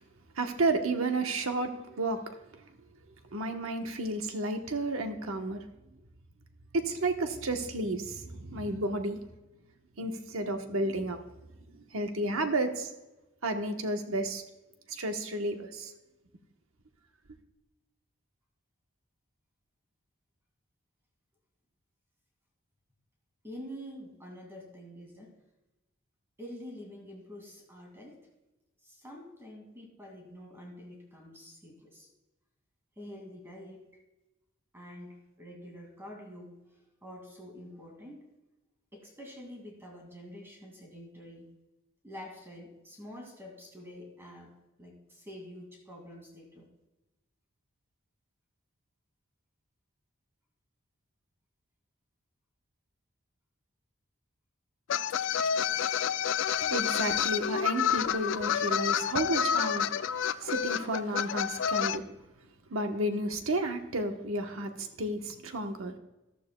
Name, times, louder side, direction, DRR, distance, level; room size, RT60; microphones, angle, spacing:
voice 1, 0.4-2.2 3.3-5.6 6.7-9.2 10.0-11.2 11.9-12.9 13.4-14.4 14.9-15.9 56.6-62.1 62.7-66.0, right 2 dB, 85° right, 5 dB, 1.1 m, -32 dB
voice 2, 23.4-25.4 26.4-28.2 28.8-32.1 33.0-34.0 34.7-38.3 38.9-41.5 42.0-46.7, equal, 10° right, 0 dB, 2.2 m, -47 dB
sound 1, 54.9-62.0, left 8 dB, 60° left, 0.3 m, -29 dB
14.0 x 12.0 x 2.3 m, 1.0 s
head